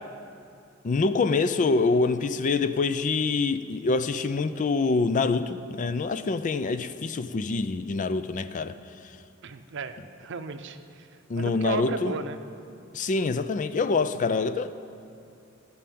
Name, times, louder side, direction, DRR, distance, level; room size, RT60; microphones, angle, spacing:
voice 1, 0.8-8.8 11.3-12.1 12.9-14.7, left 4 dB, 40° left, 0.4 m, -25 dB
voice 2, 9.4-12.4, right 4 dB, 60° right, 0.6 m, -35 dB
13.5 x 5.7 x 8.5 m
head